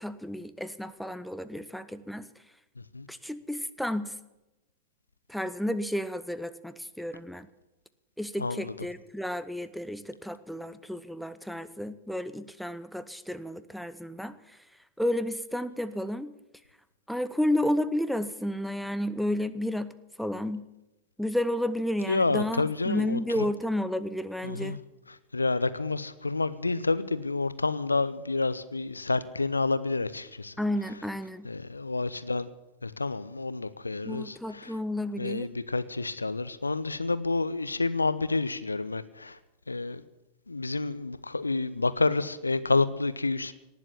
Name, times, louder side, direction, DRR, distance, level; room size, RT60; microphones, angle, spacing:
voice 1, 0.0-2.3 3.1-4.1 5.3-7.5 8.2-14.4 15.0-16.3 17.1-19.9 20.2-20.6 21.2-24.8 30.6-31.5 34.1-35.5, left 1 dB, ahead, 0.8 m, -31 dB
voice 2, 8.4-8.7 22.1-23.2 24.4-24.8 25.3-30.5 31.4-32.5 32.8-34.7 35.2-39.3 39.7-40.0 40.5-43.5, left 3 dB, 80° left, 0.7 m, -29 dB
18.5 x 7.4 x 9.8 m
figure-of-eight pair, 90°, 0 cm